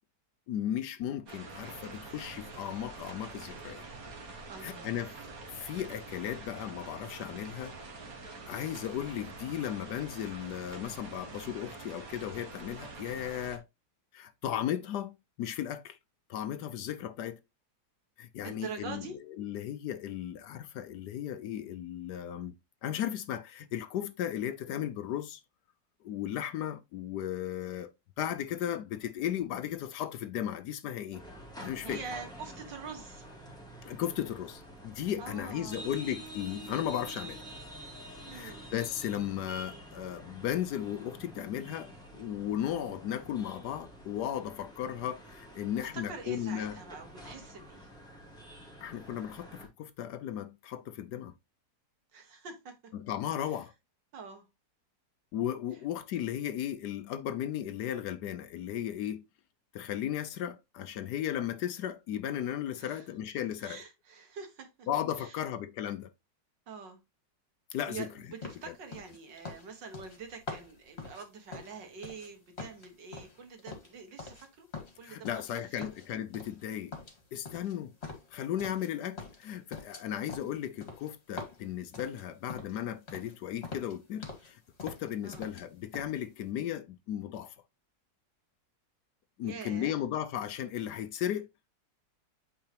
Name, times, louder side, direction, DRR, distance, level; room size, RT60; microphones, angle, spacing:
voice 1, 0.5-3.8 4.6-5.1 5.5-7.8 8.5-13.6 14.1-16.0 16.3-17.4 18.2-22.5 22.8-25.4 26.0-31.2 31.6-32.0 33.8-37.4 38.3-46.8 48.8-51.3 52.9-53.7 55.3-59.2 59.7-63.8 64.9-66.1 67.7-68.1 68.7-68.8 75.0-77.0 77.3-77.9 78.3-87.5 89.4-91.5, left 10 dB, 70° left, 1.1 m, -36 dB
sound 1, 1.3-13.6, right 3 dB, 55° right, 1.8 m, -46 dB
voice 2, 4.5-5.1 18.4-19.2 31.8-33.3 35.2-35.9 38.2-38.6 45.8-47.9 52.1-52.7 53.4-53.6 54.1-54.5 62.8-63.1 63.6-64.9 65.2-65.4 66.7-67.0 67.9-74.7 75.0-75.9 85.2-85.4 89.4-90.0, right 5 dB, 75° right, 2.3 m, -45 dB
sound 2, 31.1-49.7, right 1 dB, ahead, 2.0 m, -48 dB
sound 3, 68.4-72.3 72.6-74.5 74.7-75.5 75.8-76.6 76.9-78.9 79.2-82.8 83.1-83.3 83.6-84.5 84.8-85.6 85.9-86.1, left 4 dB, 35° left, 2.1 m, -45 dB
8.6 x 4.8 x 2.9 m
omnidirectional pair, 2.0 m